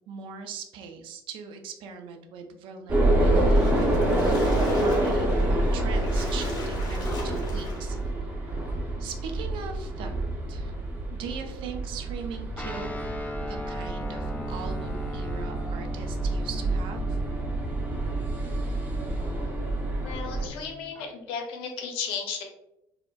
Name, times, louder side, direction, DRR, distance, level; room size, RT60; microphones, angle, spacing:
voice 1, 0.1-8.0 9.0-10.7 11.1-13.0 13.4-17.2, right 6 dB, 70° right, 5 dB, 0.5 m, -40 dB
sound 1, 2.9-20.5, right 1 dB, 20° right, 0.7 m, -27 dB
Splash splatter, 3.2-8.1, left 2 dB, 45° left, 0.9 m, -41 dB
Guitar, 12.6-21.1, left 2 dB, 15° left, 0.3 m, -39 dB
voice 2, 20.0-22.4, left 6 dB, 75° left, 3 dB, 0.7 m, -34 dB
3.5 x 2.1 x 2.2 m, 0.85 s
supercardioid pair, 90°, 9 cm